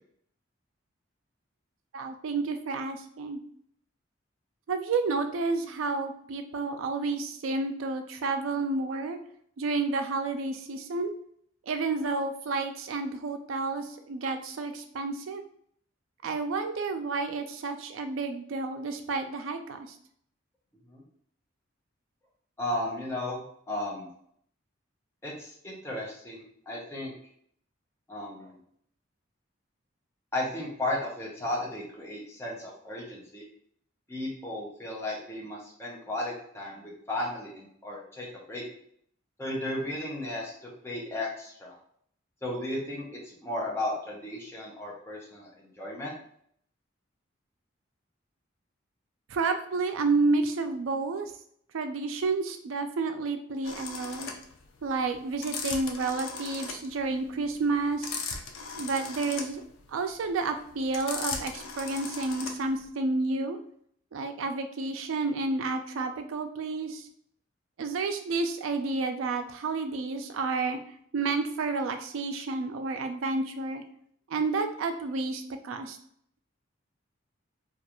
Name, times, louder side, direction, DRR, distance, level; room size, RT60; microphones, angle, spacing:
voice 1, 1.9-3.4 4.7-9.2 9.6-11.1 11.7-15.4 16.2-19.9 49.3-51.3 51.7-54.3 54.8-58.1 58.8-59.6 59.9-63.6 64.1-67.0 67.8-70.8 71.1-73.8 74.3-76.0, right 3 dB, 85° right, 7 dB, 0.4 m, -30 dB
voice 2, 22.6-23.4 23.7-24.1 25.2-27.1 28.1-28.6 30.3-33.4 34.1-38.6 39.4-41.8 42.4-46.1, left 1 dB, 15° left, -4 dB, 0.6 m, -35 dB
sound 1, 53.6-62.8, left 5 dB, 85° left, 0.4 m, -38 dB
2.4 x 2.3 x 2.9 m, 0.66 s
head